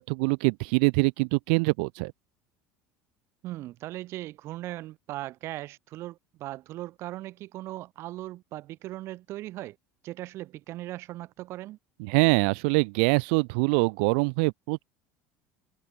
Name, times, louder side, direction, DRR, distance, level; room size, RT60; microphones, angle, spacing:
voice 1, 0.0-2.1 12.0-14.8, right 34 dB, 75° right, 0.5 m, -24 dB
voice 2, 3.4-9.8 10.0-11.8, right 16 dB, 50° right, 1.6 m, -38 dB
open air
supercardioid pair, 130°, 6 cm